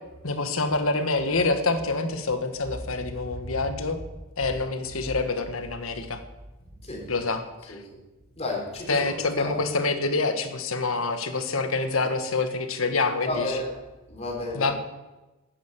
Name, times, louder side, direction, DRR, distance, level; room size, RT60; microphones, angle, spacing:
voice 1, 0.2-4.0 4.4-6.2 7.1-7.7 8.9-13.5 14.5-14.8, left 3 dB, 80° left, 8 dB, 1.5 m, -26 dB
voice 2, 3.0-3.6 6.8-7.1 7.7-8.0 8.4-9.5 13.3-13.7 14.1-14.7, left 2 dB, 30° left, -1 dB, 3.8 m, -33 dB
11.0 x 9.4 x 8.4 m, 1.1 s
head